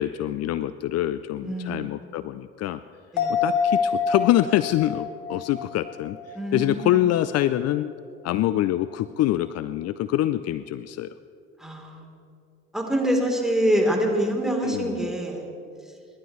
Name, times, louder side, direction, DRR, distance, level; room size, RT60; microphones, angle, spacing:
voice 1, 0.0-2.8 3.4-7.9 8.2-11.1 14.6-15.1, left 13 dB, 55° left, 14 dB, 0.5 m, -25 dB
voice 2, 1.4-2.0 3.1-3.4 6.3-7.0 11.6-12.1 12.7-15.5, equal, ahead, 0 dB, 3.5 m, -25 dB
sound 1, 3.2-6.9 7.2-7.3, left 5 dB, 70° left, 2.3 m, -27 dB
28.0 x 11.5 x 3.2 m, 2.4 s
hypercardioid pair, 60°, 31 cm